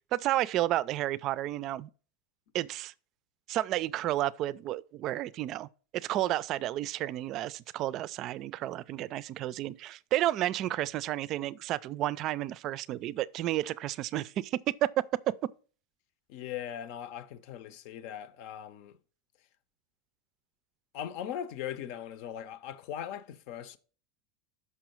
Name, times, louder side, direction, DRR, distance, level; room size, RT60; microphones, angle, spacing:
voice 1, 0.1-1.9 2.5-2.9 3.5-5.7 5.9-15.0 15.4-15.5, right 14 dB, 45° right, 0.4 m, -31 dB
voice 2, 16.3-19.0 20.9-23.8, left 10 dB, 60° left, 0.7 m, -39 dB
6.1 x 5.5 x 4.5 m
supercardioid pair, 130°, 0 cm